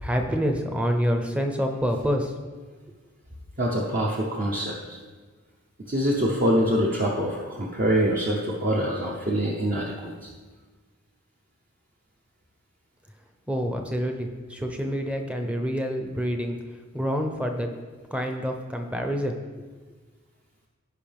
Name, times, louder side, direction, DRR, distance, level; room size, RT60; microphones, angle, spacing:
voice 1, 0.0-2.3 13.5-16.6 16.9-17.7 18.1-19.4, equal, 5° right, 4 dB, 0.7 m, -27 dB
voice 2, 3.6-5.0 5.9-10.1, equal, 40° right, -3 dB, 0.9 m, -25 dB
16.0 x 5.4 x 3.5 m, 1.4 s
head